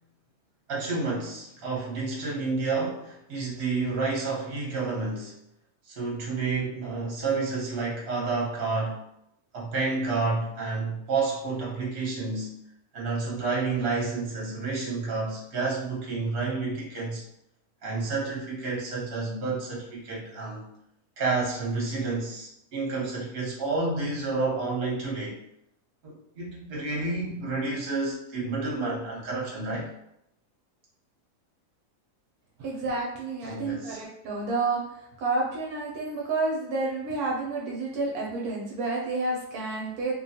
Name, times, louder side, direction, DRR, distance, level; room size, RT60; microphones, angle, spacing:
voice 1, 0.7-5.4 5.8-9.0 9.5-12.5 12.9-17.2 17.8-20.7 21.2-25.4 26.0-29.9 33.4-34.0, right 3 dB, 45° right, -5 dB, 1.0 m, -30 dB
voice 2, 32.6-40.1, right 3 dB, 75° right, -3 dB, 1.1 m, -30 dB
3.0 x 2.2 x 2.7 m, 0.78 s
omnidirectional pair, 1.7 m